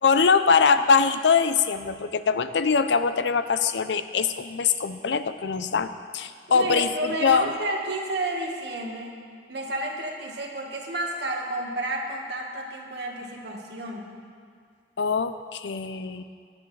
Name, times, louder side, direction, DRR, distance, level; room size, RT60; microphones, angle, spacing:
voice 1, 0.0-7.5 15.0-16.2, left 5 dB, 85° left, 11 dB, 0.5 m, -23 dB
voice 2, 6.5-9.1 9.5-14.1, right 1 dB, 75° right, 0 dB, 1.6 m, -31 dB
17.5 x 10.5 x 3.3 m, 2.1 s
head